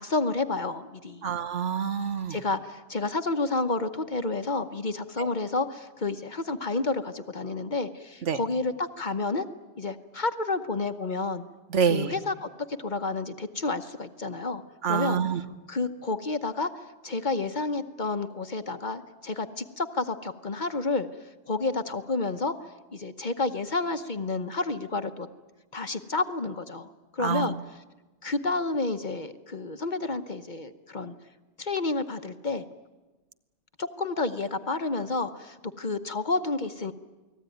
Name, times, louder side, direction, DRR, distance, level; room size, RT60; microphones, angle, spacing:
voice 1, 0.0-1.3 2.3-9.5 9.8-11.4 11.8-14.6 14.9-15.2 15.7-16.7 17.0-21.1 21.5-22.5 22.9-25.3 25.7-27.8 28.2-31.1 31.6-32.6 33.8-36.9, left 3 dB, 40° left, 9 dB, 1.0 m, -30 dB
voice 2, 1.2-2.4 5.2-5.3 8.2-8.4 11.7-12.1 14.8-15.4 27.2-27.5, right 7 dB, 70° right, 11 dB, 1.3 m, -26 dB
29.0 x 19.5 x 9.3 m, 1.2 s
omnidirectional pair, 1.3 m